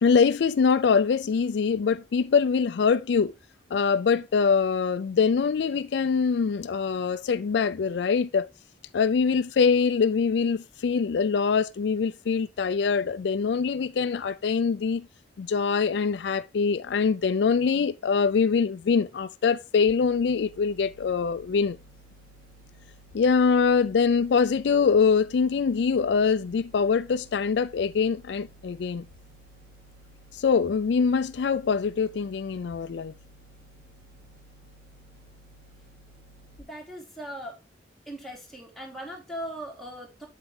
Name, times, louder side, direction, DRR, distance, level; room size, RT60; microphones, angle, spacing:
voice 1, 0.0-3.3 3.7-8.5 8.9-15.1 15.4-21.8 23.1-29.1 30.3-33.1, left 5 dB, 70° left, 0.4 m, -24 dB
sound 1, 19.9-36.6, right 1 dB, 50° right, 3.7 m, -54 dB
voice 2, 36.6-37.6 38.1-40.3, right 1 dB, ahead, 2.8 m, -39 dB
8.2 x 7.9 x 3.2 m
head